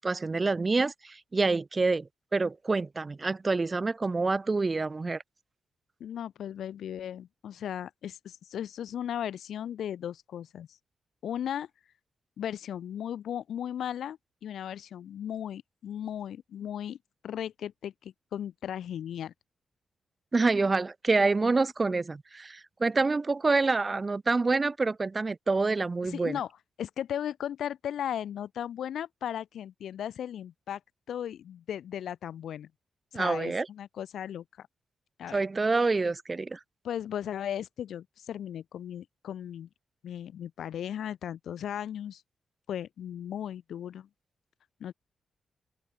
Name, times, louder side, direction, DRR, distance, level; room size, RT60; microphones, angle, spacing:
voice 1, 0.0-5.2 20.3-26.4 33.1-33.7 35.3-36.6, right 3 dB, 30° right, 0.6 m, -27 dB
voice 2, 6.0-10.8 11.2-11.7 12.4-17.0 17.2-19.3 26.0-26.5 26.8-30.8 31.1-32.7 33.1-34.7 35.2-35.4 36.8-39.7 40.0-42.2 42.7-44.1 44.8-44.9, left 10 dB, 85° left, 1.7 m, -36 dB
open air
cardioid pair, 95°, 0 cm